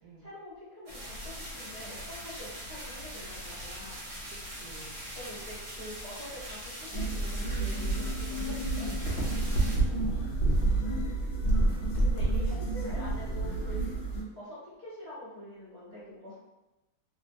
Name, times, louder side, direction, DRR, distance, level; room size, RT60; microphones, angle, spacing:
voice 1, 0.2-4.0 5.1-9.4 12.0-13.8 14.3-16.4, left 1 dB, 35° right, -9 dB, 0.8 m, -45 dB
sound 1, 0.9-9.8, equal, 65° right, 1.4 m, -42 dB
voice 2, 4.3-5.0 9.9-11.2, equal, 90° right, -3 dB, 1.2 m, -52 dB
sound 2, 6.9-14.2, right 2 dB, 60° left, 0.7 m, -29 dB
2.9 x 2.1 x 2.5 m, 1.0 s
omnidirectional pair, 1.6 m